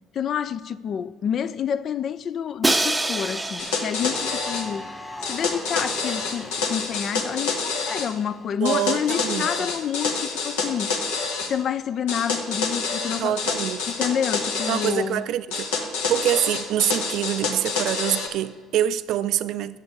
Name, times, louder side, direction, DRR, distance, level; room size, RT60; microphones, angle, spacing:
voice 1, 0.1-11.0 11.5-13.3 13.9-15.2, left 8 dB, 50° left, 0.4 m, -28 dB
Crash cymbal, 2.6-4.6, right 2 dB, 10° right, 0.6 m, -26 dB
sound 1, 3.6-4.7 5.2-8.1 8.6-11.5 12.1-15.0 15.5-18.3, left 4 dB, 80° left, 1.1 m, -27 dB
sound 2, 4.0-8.6, left 1 dB, 20° left, 1.1 m, -40 dB
voice 2, 8.6-9.5 13.2-13.8 14.7-19.8, right 12 dB, 65° right, 0.3 m, -25 dB
6.8 x 5.6 x 7.0 m
hypercardioid pair, 60°, 0 cm